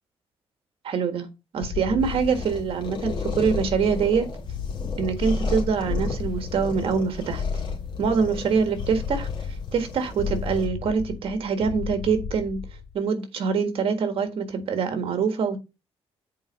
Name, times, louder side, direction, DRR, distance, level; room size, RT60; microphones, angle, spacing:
voice 1, 0.8-1.3 1.5-4.3 5.0-7.4 8.0-9.3 9.7-12.6 12.9-15.6, right 6 dB, 65° right, 1.6 m, -24 dB
sound 1, 1.6-13.0, left 6 dB, 70° left, 0.9 m, -34 dB
sound 2, 2.0-10.7, left 2 dB, 50° left, 2.7 m, -34 dB
7.7 x 4.5 x 5.3 m
cardioid pair, 145°, 10 cm